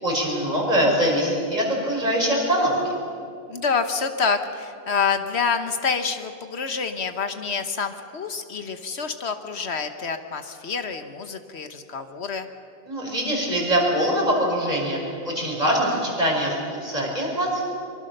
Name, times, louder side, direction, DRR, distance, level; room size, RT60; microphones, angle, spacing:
voice 1, 0.0-3.0 12.9-17.6, equal, 40° right, -2 dB, 5.7 m, -23 dB
voice 2, 3.5-12.5, left 5 dB, 75° left, 8 dB, 1.4 m, -27 dB
24.0 x 23.5 x 6.7 m, 2.5 s
omnidirectional pair, 1.1 m